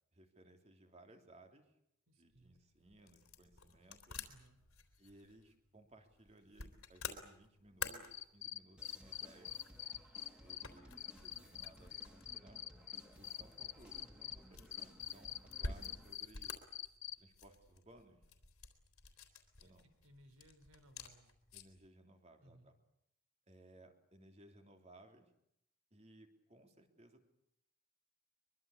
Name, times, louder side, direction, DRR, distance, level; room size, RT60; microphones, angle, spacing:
voice 1, 0.1-1.8 2.2-4.2 5.0-9.5 10.2-10.9 11.2-12.6 13.2-15.3 15.6-16.6 17.2-18.2 19.6-19.8 21.5-22.7 23.5-25.3 25.9-27.3, right 1 dB, 30° right, 5 dB, 3.2 m, -62 dB
voice 2, 2.1-2.6 4.3-4.6 19.6-21.3 22.4-22.7, equal, 80° right, 10 dB, 4.4 m, -64 dB
sound 1, 2.3-21.9, left 4 dB, 85° left, 3.6 m, -51 dB
Cricket, 7.8-10.6 11.0-14.3 14.7-17.1, left 11 dB, 55° left, 1.2 m, -44 dB
sound 2, 8.8-16.2, equal, 5° right, 3.3 m, -60 dB
23.5 x 23.5 x 8.5 m, 0.77 s
head